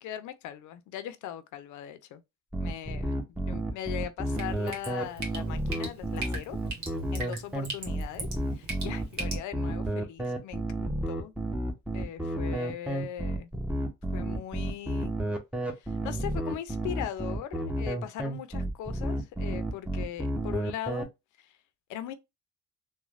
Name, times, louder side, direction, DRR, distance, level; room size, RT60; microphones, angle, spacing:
voice 1, 0.0-2.2 2.6-6.6 7.1-11.3 11.9-13.5 14.1-15.2 15.8-21.1 21.4-21.6 21.9-22.1, left 11 dB, 75° left, 0.5 m, -40 dB
sound 1, 2.5-21.0, right 1 dB, 5° right, 0.6 m, -31 dB
Drip, 4.3-9.4, right 3 dB, 65° right, 1.1 m, -40 dB
3.0 x 2.1 x 2.4 m
cardioid pair, 90°, 30 cm